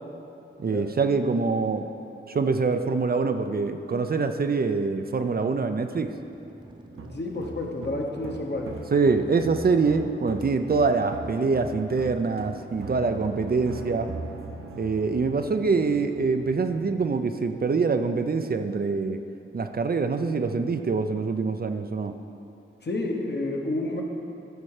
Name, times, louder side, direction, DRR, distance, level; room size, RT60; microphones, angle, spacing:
voice 1, 0.6-1.9 2.3-6.1 8.9-14.1 14.7-19.2 19.5-22.2, right 4 dB, 45° right, 7 dB, 0.5 m, -25 dB
sound 1, 5.9-13.5, right 2 dB, 20° right, 0.7 m, -48 dB
sound 2, 6.9-17.2, right 3 dB, 90° right, 0.6 m, -40 dB
voice 2, 7.0-8.7 22.8-24.0, left 2 dB, 55° left, 0 dB, 1.1 m, -30 dB
12.5 x 4.3 x 4.9 m, 2.7 s
wide cardioid pair, 70°, 21 cm